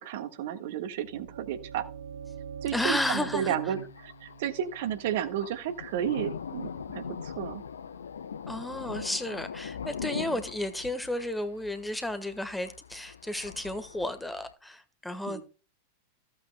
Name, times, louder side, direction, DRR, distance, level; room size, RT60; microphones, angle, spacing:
voice 1, 0.0-1.9 2.6-7.6 10.1-10.4 15.3-15.4, right 10 dB, 55° right, 1.5 m, -32 dB
sound 1, 0.7-6.6, right 6 dB, 75° right, 1.7 m, -45 dB
voice 2, 2.7-3.5 8.5-15.4, left 1 dB, 5° left, 1.3 m, -33 dB
Thunder, 3.2-14.5, left 7 dB, 70° left, 0.7 m, -42 dB
15.5 x 8.6 x 2.2 m
figure-of-eight pair, 90°, 0 cm